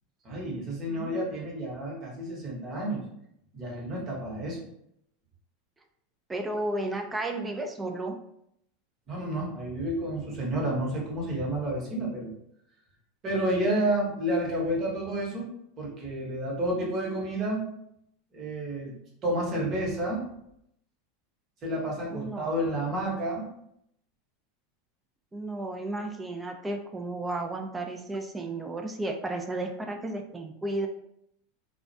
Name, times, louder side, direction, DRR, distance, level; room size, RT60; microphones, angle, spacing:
voice 1, 0.2-3.0 3.5-4.7 9.1-12.3 13.2-15.5 15.8-17.6 18.3-18.9 19.2-20.3 21.6-23.5, right 1 dB, 35° right, -2 dB, 0.9 m, -30 dB
voice 2, 6.3-8.2 22.1-22.5 25.3-30.9, right 2 dB, 15° right, 4 dB, 0.3 m, -33 dB
2.3 x 2.1 x 2.6 m, 0.75 s
supercardioid pair, 125°, 0 cm